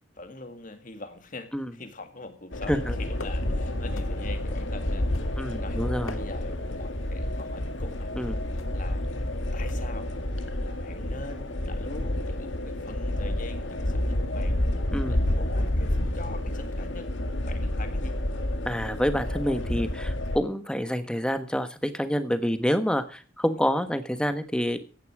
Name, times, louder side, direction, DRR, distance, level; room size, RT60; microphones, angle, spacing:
voice 1, 0.2-5.1 5.3-5.8 6.2-8.1 8.7-9.0 9.5-10.1 10.6-14.6 15.1-18.2, left 2 dB, 40° left, 8 dB, 2.1 m, -43 dB
sound 1, 2.5-20.4, left 1 dB, 70° left, 2.0 m, -29 dB
sound 2, 3.1-3.6 4.0-4.4 5.1-5.6 5.9-6.6 7.4-7.7 8.6-8.9 9.7-10.0, left 2 dB, 85° left, 1.8 m, -44 dB
voice 2, 5.4-6.2 8.2-8.3 14.9-15.2 18.6-24.8, equal, 5° left, 10 dB, 1.2 m, -27 dB
15.5 x 11.0 x 4.8 m, 0.37 s
head